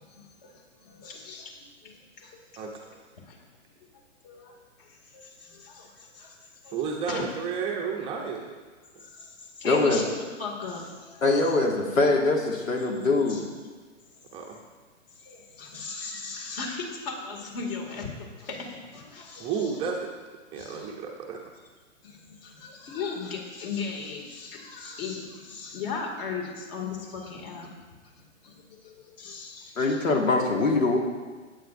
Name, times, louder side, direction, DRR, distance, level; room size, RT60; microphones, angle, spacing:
voice 1, 0.0-3.4 3.8-3.9 4.2-7.2 9.0-10.1 10.4-11.2 13.3-13.4 14.5-14.6 15.1-19.9 20.5-21.0 22.0-27.7 28.4-30.1, left 4 dB, 45° left, 2 dB, 2.4 m, -38 dB
voice 2, 6.7-8.5 14.3-14.6 19.4-20.0 20.5-21.4, right 6 dB, 15° right, 0 dB, 0.6 m, -31 dB
voice 3, 9.6-10.0 11.2-13.5 29.8-31.0, left 3 dB, 90° left, 1 dB, 2.0 m, -23 dB
16.0 x 9.1 x 2.6 m, 1.4 s
hypercardioid pair, 135°, 39 cm